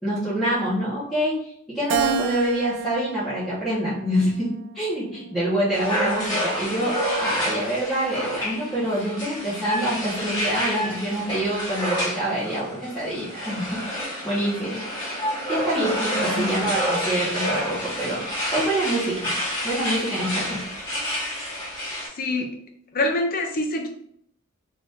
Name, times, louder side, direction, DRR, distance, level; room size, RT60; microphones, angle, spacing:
voice 1, 0.0-13.7 13.9-14.8 15.5-19.3 19.6-20.6, right 1 dB, ahead, -14 dB, 1.0 m, -26 dB
Keyboard (musical), 1.9-4.4 5.0-6.2, right 9 dB, 55° right, 0.3 m, -31 dB
sound 1, 5.7-22.1, equal, 20° left, 1.3 m, -28 dB
voice 2, 16.1-16.7 22.2-22.5 22.9-23.9, left 2 dB, 40° left, 3 dB, 0.6 m, -26 dB
2.8 x 2.6 x 3.4 m, 0.66 s
head